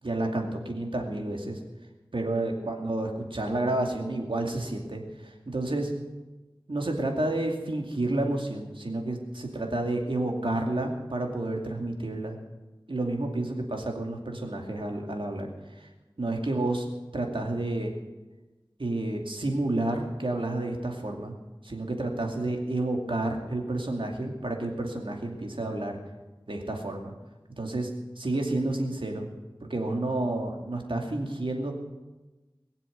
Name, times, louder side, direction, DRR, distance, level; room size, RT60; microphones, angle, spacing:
voice 1, 0.0-1.6 2.1-5.9 6.7-12.4 12.9-15.9 16.2-16.9 17.1-17.9 18.8-21.3 21.6-26.0 26.5-27.1 27.6-27.9 28.2-29.3 29.6-31.7, right 2 dB, 75° right, 2 dB, 2.5 m, -30 dB
21.5 x 7.5 x 8.1 m, 1.1 s
wide cardioid pair, 45°, 9 cm